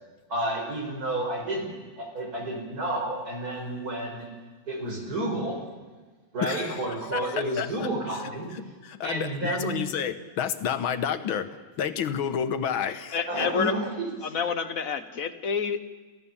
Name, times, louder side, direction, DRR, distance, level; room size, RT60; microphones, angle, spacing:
voice 1, 0.3-4.3 4.7-5.6 6.3-8.5 9.0-9.7 13.3-14.1, right 1 dB, 45° right, 2 dB, 5.4 m, -30 dB
voice 2, 6.4-6.8 7.1-8.2 8.8-11.5 11.8-13.4, left 8 dB, 80° left, 10 dB, 2.0 m, -30 dB
voice 3, 13.1-13.8 14.2-15.8, left 6 dB, 50° left, 10 dB, 1.4 m, -28 dB
28.5 x 16.0 x 7.2 m, 1.3 s
omnidirectional pair, 2.2 m